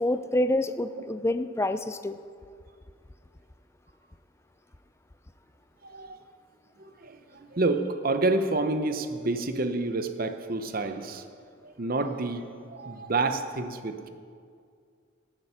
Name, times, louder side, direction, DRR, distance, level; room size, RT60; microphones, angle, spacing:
voice 1, 0.0-2.2, left 1 dB, 15° left, 11 dB, 0.4 m, -27 dB
voice 2, 5.8-6.2 6.8-11.2 11.6-12.4 12.7-14.1, right 2 dB, 45° right, 9 dB, 0.8 m, -29 dB
16.5 x 9.0 x 5.7 m, 2.2 s
head